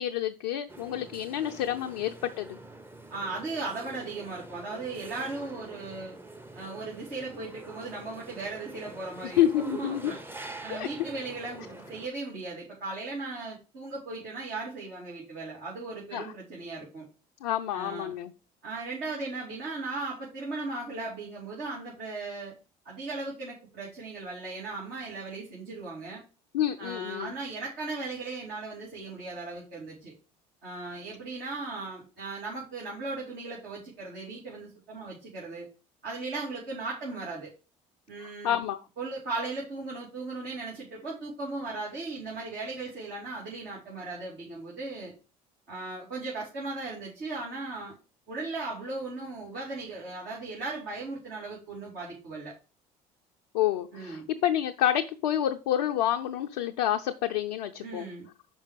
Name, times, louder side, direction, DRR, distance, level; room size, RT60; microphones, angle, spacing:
voice 1, 0.0-2.6 9.4-10.1 10.7-10.9 16.1-16.3 17.4-18.3 26.5-27.3 38.2-38.8 53.5-58.1, left 11 dB, 80° left, 4 dB, 0.5 m, -28 dB
sound 1, 0.7-12.1, right 2 dB, 10° right, 0.8 m, -46 dB
voice 2, 3.1-6.2 6.5-10.2 10.6-17.0 17.7-18.1 18.6-22.5 22.8-26.2 26.8-30.1 30.6-35.7 36.0-37.5 38.1-38.6 39.0-45.1 45.7-47.9 48.3-52.5 53.9-54.3 57.8-58.2, right 3 dB, 60° right, -5 dB, 2.8 m, -37 dB
5.3 x 5.1 x 4.9 m, 0.33 s
hypercardioid pair, 60°, 19 cm